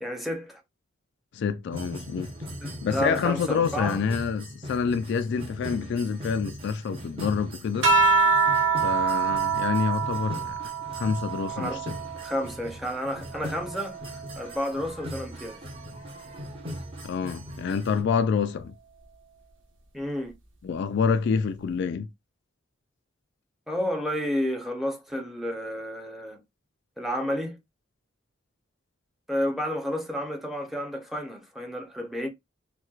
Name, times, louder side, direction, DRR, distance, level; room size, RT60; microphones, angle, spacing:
voice 1, 0.0-0.6 2.6-4.0 11.6-11.8 12.2-14.0 14.4-15.6 19.9-20.3 23.7-26.4 27.0-27.6 29.3-32.3, equal, ahead, 0.7 m, -31 dB
voice 2, 1.3-2.3 2.8-7.9 8.8-10.6 11.0-11.9 17.0-18.7 20.6-22.1, left 6 dB, 60° left, 0.3 m, -27 dB
sound 1, 1.7-18.0, equal, 30° right, 1.0 m, -40 dB
sound 2, 7.8-12.6 13.1-14.8 16.0-16.5, right 4 dB, 85° right, 1.2 m, -26 dB
4.3 x 2.2 x 2.3 m
head